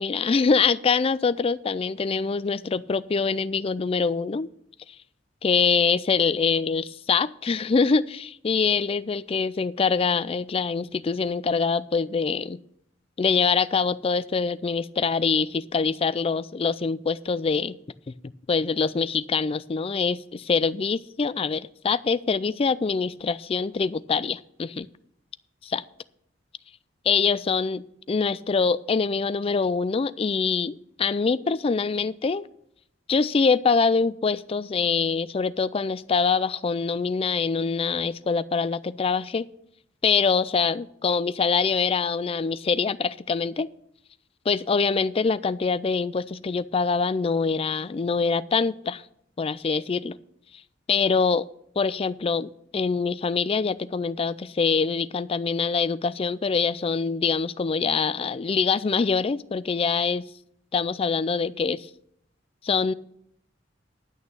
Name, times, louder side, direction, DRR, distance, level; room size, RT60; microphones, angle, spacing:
voice 1, 0.0-4.5 5.4-12.6 13.2-17.8 18.5-24.9 25.6-25.8 27.1-32.5 33.1-39.4 40.0-43.7 44.5-49.0 49.4-50.2 50.9-51.5 51.8-60.3 60.7-61.9 62.6-62.9, left 5 dB, 30° left, 17 dB, 0.4 m, -24 dB
10.5 x 6.4 x 7.0 m, 0.70 s
head